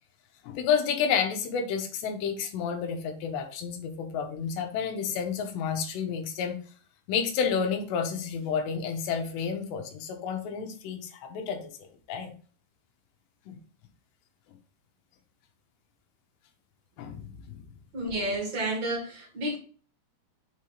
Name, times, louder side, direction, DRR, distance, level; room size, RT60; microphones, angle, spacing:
voice 1, 0.4-6.6 7.1-11.7 12.1-12.3 13.5-13.6 17.0-17.6, left 6 dB, 75° left, 2.9 m, -30 dB
voice 2, 17.9-19.6, right 1 dB, 45° right, 2.5 m, -30 dB
7.6 x 3.4 x 4.3 m
omnidirectional pair, 5.5 m